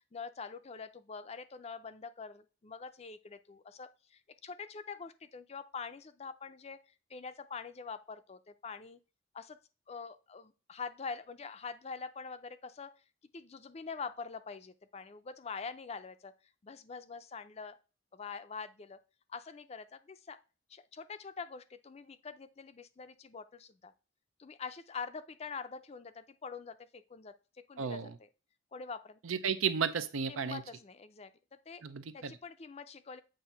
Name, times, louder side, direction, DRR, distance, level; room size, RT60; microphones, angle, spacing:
voice 1, 0.0-6.8 7.1-9.0 9.3-9.6 9.9-12.9 13.3-16.3 16.6-17.8 18.1-19.0 19.3-20.4 20.7-23.9 24.4-27.3 27.7-28.3 28.7-29.2 30.3-31.3 31.7-31.8 32.1-33.2, left 5 dB, 30° left, 12 dB, 0.4 m, -45 dB
voice 2, 27.8-28.2 29.2-30.6 31.8-32.3, right 6 dB, 90° right, 11 dB, 0.6 m, -33 dB
7.6 x 2.6 x 5.6 m, 0.33 s
head